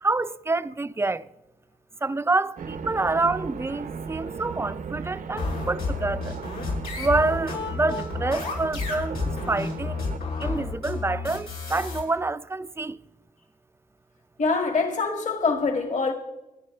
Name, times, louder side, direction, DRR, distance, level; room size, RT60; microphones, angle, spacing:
voice 1, 0.0-1.3 2.0-6.3 7.0-9.2 9.5-10.0 10.4-13.0, right 3 dB, 15° right, 0.5 m, -27 dB
sound 1, 2.6-10.2, right 5 dB, 60° right, 0.8 m, -36 dB
sound 2, 5.4-12.0, left 4 dB, 80° left, 7.2 m, -31 dB
voice 2, 14.4-16.1, left 4 dB, 55° left, 2.2 m, -24 dB
26.5 x 11.0 x 3.3 m
cardioid pair, 95°, 15 cm